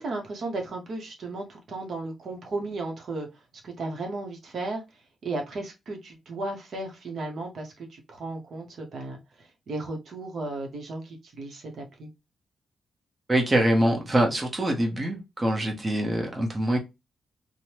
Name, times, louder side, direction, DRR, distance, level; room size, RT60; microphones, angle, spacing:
voice 1, 0.0-3.3 3.6-12.1, right 2 dB, 55° right, 2 dB, 0.8 m, -35 dB
voice 2, 13.3-16.8, right 1 dB, 20° right, 1 dB, 0.9 m, -24 dB
3.2 x 2.0 x 2.9 m, 0.24 s
cardioid pair, 130°, 0 cm